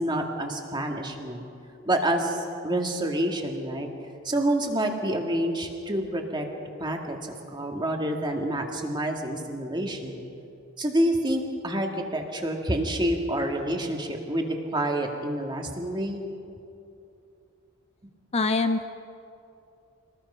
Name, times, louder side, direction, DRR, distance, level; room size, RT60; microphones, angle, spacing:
voice 1, 0.0-1.4 1.9-3.9 4.2-6.5 6.8-10.2 10.8-16.2, right 1 dB, 20° right, 2 dB, 2.1 m, -28 dB
voice 2, 18.3-18.8, left 3 dB, 30° left, 9 dB, 0.6 m, -24 dB
26.0 x 19.5 x 5.7 m, 2.7 s
head